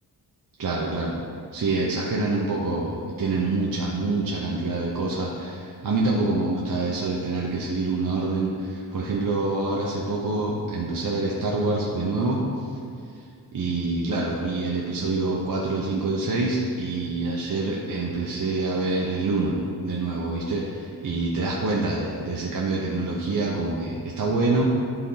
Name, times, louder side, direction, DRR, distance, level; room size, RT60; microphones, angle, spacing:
voice 1, 0.6-1.1 1.5-12.7 13.5-19.6 19.8-24.7, right 3 dB, 55° right, -3 dB, 0.8 m, -26 dB
11.0 x 4.1 x 3.9 m, 2.3 s
wide cardioid pair, 125°, 40 cm